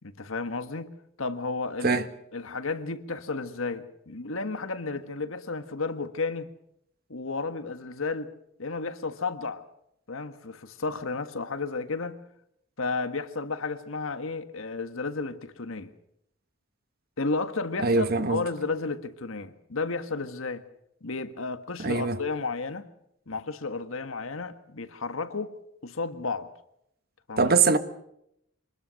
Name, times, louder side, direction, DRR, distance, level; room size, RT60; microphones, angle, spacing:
voice 1, 0.0-0.9 1.2-2.0 2.3-6.5 7.1-8.3 8.6-9.6 10.1-12.2 12.8-15.9 17.2-20.6 21.0-22.9 23.3-25.5 25.8-26.5 27.3-27.5, left 3 dB, 75° left, 1.5 m, -32 dB
voice 2, 17.8-18.4 21.8-22.2 27.4-27.8, right 4 dB, 50° right, 1.4 m, -22 dB
25.0 x 20.5 x 6.4 m
head